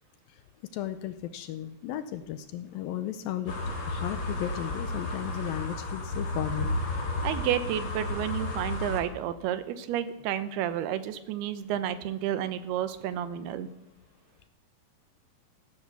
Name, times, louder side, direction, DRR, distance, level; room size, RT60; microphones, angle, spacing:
voice 1, 0.7-3.5 3.9-6.8, left 11 dB, 80° left, 10 dB, 2.2 m, -35 dB
sound 1, 3.5-9.0, left 2 dB, 40° left, 2.3 m, -32 dB
voice 2, 7.2-13.7, right 10 dB, 80° right, 12 dB, 2.8 m, -31 dB
15.5 x 10.0 x 6.8 m, 0.86 s
omnidirectional pair, 4.6 m